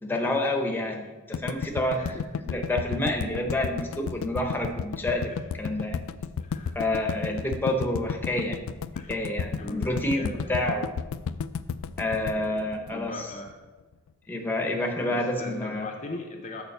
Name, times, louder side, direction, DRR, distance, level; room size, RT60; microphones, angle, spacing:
voice 1, 0.0-2.0 2.4-6.0 6.7-8.6 9.1-10.9 12.0-13.3 14.3-15.9, left 1 dB, 10° left, 3 dB, 0.9 m, -28 dB
sound 1, 1.3-13.5, left 6 dB, 70° left, 0.3 m, -32 dB
voice 2, 6.4-7.1 8.9-9.2 9.6-10.6 12.3-13.6 15.0-16.6, left 2 dB, 35° left, 3 dB, 0.7 m, -40 dB
6.9 x 5.0 x 6.6 m, 1.2 s
head